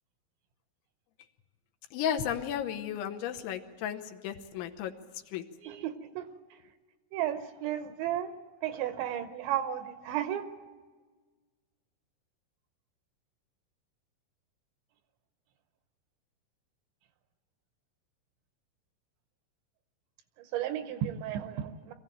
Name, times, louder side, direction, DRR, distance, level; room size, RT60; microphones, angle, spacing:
voice 1, 1.9-4.9 5.3-5.4, left 9 dB, 80° left, 5 dB, 3.2 m, -34 dB
voice 2, 5.6-6.6 7.1-8.3 8.6-10.4 20.4-21.9, right 11 dB, 80° right, 9 dB, 2.9 m, -34 dB
23.5 x 15.0 x 9.0 m, 1.4 s
omnidirectional pair, 5.6 m